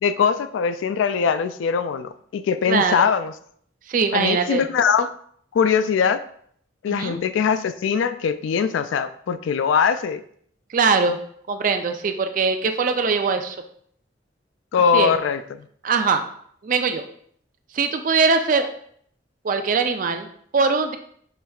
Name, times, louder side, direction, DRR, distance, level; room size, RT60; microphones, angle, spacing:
voice 1, 0.0-3.3 4.1-5.1 5.5-6.2 6.8-10.2 14.7-15.4, left 6 dB, 85° left, 12 dB, 0.3 m, -21 dB
voice 2, 2.7-3.1 3.9-4.6 6.9-7.2 10.7-11.2 11.5-13.6 14.9-15.2 15.8-16.2 16.6-17.0 17.7-18.7 19.4-20.3 20.5-21.0, right 4 dB, 45° right, 7 dB, 0.4 m, -21 dB
5.8 x 3.2 x 2.3 m, 0.63 s
head